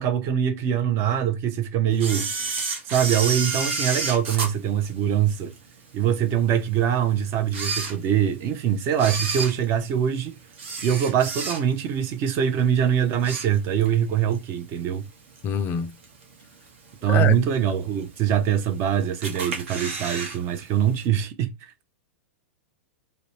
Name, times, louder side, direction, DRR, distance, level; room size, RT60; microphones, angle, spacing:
voice 1, 0.0-2.3 2.9-5.5 5.9-10.4 10.8-15.1 17.0-21.7, right 9 dB, 40° right, 0.6 m, -23 dB
Camera, 2.0-5.6 6.1-6.2 6.9-7.0 7.4-8.4 8.9-11.9 12.3-12.6 12.9-14.0 14.3-14.4 15.4-15.5 16.0-16.4 16.9-17.0 17.1-17.2 17.4-17.5 18.3-18.8 19.2-20.4 20.6-20.7 21.0-21.1, right 4 dB, 60° right, 0.9 m, -30 dB
voice 2, 15.4-15.9 17.1-17.4, left 7 dB, 30° left, 0.3 m, -25 dB
2.5 x 2.1 x 3.0 m
hypercardioid pair, 105°, 7 cm